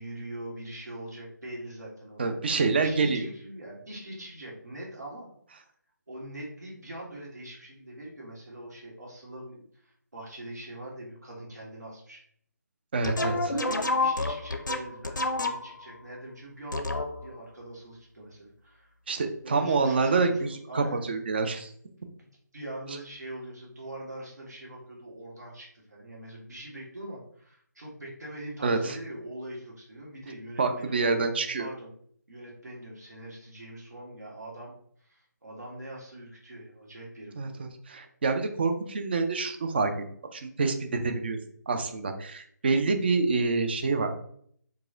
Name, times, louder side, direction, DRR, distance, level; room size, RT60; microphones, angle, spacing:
voice 1, 0.0-5.3 6.1-12.2 13.1-18.9 19.4-21.2 22.5-31.1 31.6-31.9 32.3-37.6, right 1 dB, 65° right, -3 dB, 1.6 m, -42 dB
voice 2, 2.2-3.3 12.9-13.4 19.1-21.7 28.6-29.0 30.6-31.7 37.4-39.9 40.3-41.4 41.7-44.1, right 4 dB, 35° right, 6 dB, 0.5 m, -27 dB
sound 1, 13.0-15.9 16.7-17.4, left 2 dB, 85° left, 0.6 m, -29 dB
4.7 x 2.2 x 3.7 m, 0.64 s
figure-of-eight pair, 155°, 10 cm